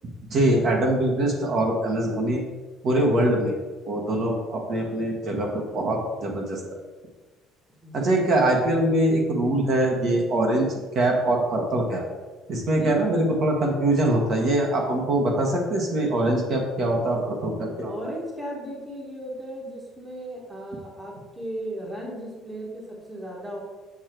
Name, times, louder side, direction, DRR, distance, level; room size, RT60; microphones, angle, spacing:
voice 1, 0.3-2.4 2.8-3.6 3.9-6.6 7.9-10.7 10.9-12.0 12.5-18.1, right 1 dB, 40° right, 1 dB, 1.3 m, -23 dB
voice 2, 7.8-8.1 12.8-13.0 17.9-23.6, right 1 dB, 10° right, -2 dB, 1.3 m, -36 dB
7.3 x 6.2 x 4.5 m, 1.3 s
cardioid pair, 175°, 0 cm